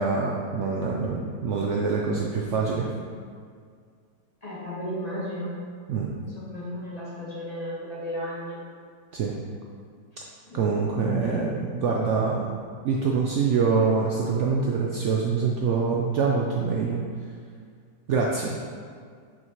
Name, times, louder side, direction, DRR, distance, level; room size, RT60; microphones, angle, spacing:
voice 1, 0.0-2.9 5.9-6.1 9.1-9.4 10.5-12.6 12.8-17.0 18.1-18.5, right 5 dB, 80° right, -2 dB, 0.6 m, -25 dB
voice 2, 4.4-5.5 6.2-8.6 10.5-10.7 11.2-11.7, equal, 25° left, -8 dB, 1.5 m, -34 dB
6.2 x 5.6 x 3.1 m, 2.1 s
omnidirectional pair, 1.8 m